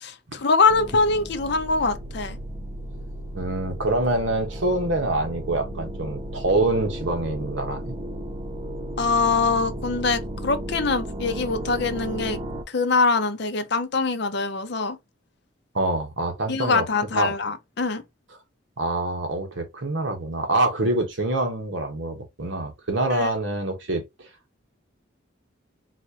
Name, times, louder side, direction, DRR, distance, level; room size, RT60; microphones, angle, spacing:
voice 1, 0.0-2.4 9.0-12.4 12.7-15.0 16.5-18.0 23.1-23.3, left 4 dB, 55° left, 0.6 m, -23 dB
sound 1, 0.7-12.6, equal, 30° right, 0.5 m, -34 dB
voice 2, 3.3-7.9 15.7-16.8 17.1-17.3 18.8-24.3, right 2 dB, 70° right, 1.1 m, -25 dB
4.1 x 2.4 x 2.9 m
head